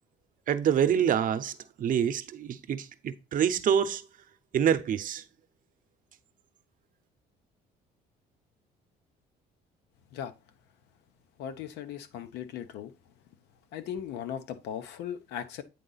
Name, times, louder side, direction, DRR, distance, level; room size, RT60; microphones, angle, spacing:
voice 1, 0.5-1.5 1.8-4.0 4.5-5.2, right 8 dB, 55° right, 0.8 m, -26 dB
voice 2, 11.4-12.9 13.7-15.6, left 9 dB, 85° left, 0.9 m, -38 dB
8.6 x 3.8 x 4.0 m
cardioid pair, 110°, 17 cm